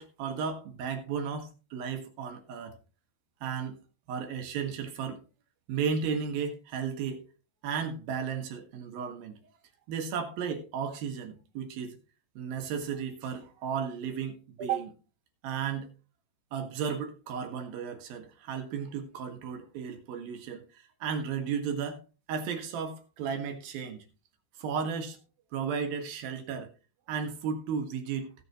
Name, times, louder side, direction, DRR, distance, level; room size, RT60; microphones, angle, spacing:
voice 1, 0.0-2.8 3.4-3.8 4.1-5.2 5.7-7.3 7.6-9.4 9.9-12.0 12.4-14.9 15.4-15.9 16.5-20.6 21.0-22.0 22.3-24.0 24.6-25.2 25.5-26.7 27.1-28.3, right 6 dB, 65° right, 2.9 m, -34 dB
17.0 x 7.6 x 3.0 m
omnidirectional pair, 5.4 m